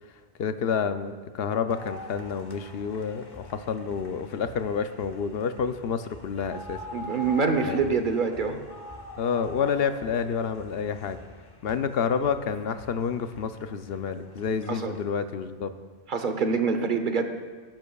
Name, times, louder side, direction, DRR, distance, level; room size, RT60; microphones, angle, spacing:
voice 1, 0.4-6.8 7.7-7.9 9.2-11.2 11.6-15.7, left 6 dB, 75° left, 10 dB, 0.8 m, -29 dB
sound 1, 1.7-15.1, left 1 dB, 25° left, 0.9 m, -45 dB
voice 2, 6.9-8.6 14.7-15.0 16.1-17.3, right 5 dB, 55° right, 6 dB, 1.0 m, -25 dB
19.0 x 10.5 x 2.3 m, 1.5 s
omnidirectional pair, 1.1 m